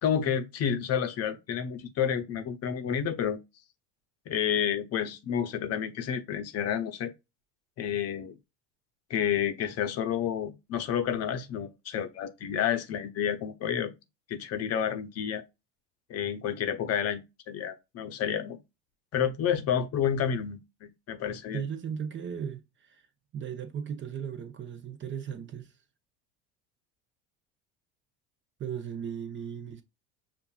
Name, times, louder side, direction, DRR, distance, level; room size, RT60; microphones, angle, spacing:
voice 1, 0.0-3.4 4.3-7.1 7.8-8.3 9.1-13.9 14.3-15.4 16.1-18.6 19.1-21.6, left 8 dB, 45° left, 0.7 m, -30 dB
voice 2, 21.5-23.0 23.3-25.7 28.6-29.8, right 8 dB, 35° right, 0.7 m, -36 dB
5.4 x 2.5 x 2.3 m
supercardioid pair, 95°, 34 cm